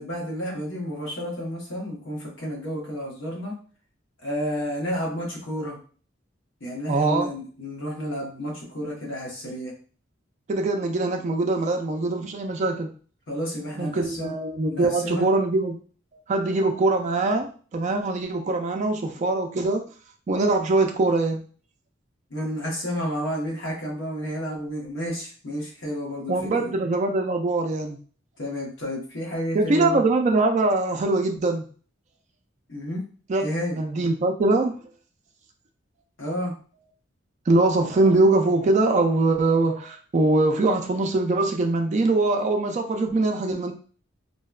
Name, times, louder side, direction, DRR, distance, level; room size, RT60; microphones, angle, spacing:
voice 1, 0.0-3.6 4.2-5.8 6.6-9.7 13.3-14.3 14.7-15.2 22.3-26.8 28.4-30.0 32.7-33.0 33.4-33.8 36.2-36.5, equal, 65° left, -2 dB, 1.0 m, -31 dB
voice 2, 6.9-7.3 10.5-12.9 13.8-15.8 16.1-19.8 20.3-21.4 26.3-28.0 29.5-31.6 33.3-33.4 33.8-34.8 37.5-43.7, right 2 dB, 35° right, 3 dB, 0.3 m, -22 dB
2.7 x 2.2 x 2.3 m, 0.40 s
head